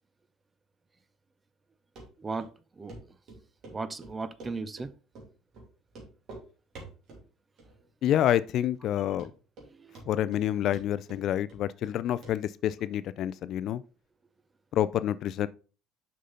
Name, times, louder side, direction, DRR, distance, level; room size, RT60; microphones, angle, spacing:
Run, 2.0-2.1 2.4-2.5 2.9-3.0 3.3-4.9 5.1-5.3 5.5-5.7 5.9-6.4 6.7-7.2 7.6-8.0 8.3-8.4 8.8-8.9 9.2-9.7 9.9-10.4 10.7-12.0 12.2-12.3 12.6-12.7, right 2 dB, 45° right, 2.8 m, -47 dB
voice 1, 2.2-2.5 2.8-3.0 3.7-4.9 9.7-10.0, right 4 dB, 15° right, 0.5 m, -36 dB
voice 2, 8.0-9.3 10.1-13.8 14.7-15.5, left 11 dB, 45° left, 0.3 m, -28 dB
6.5 x 5.7 x 3.8 m
cardioid pair, 165°, 0 cm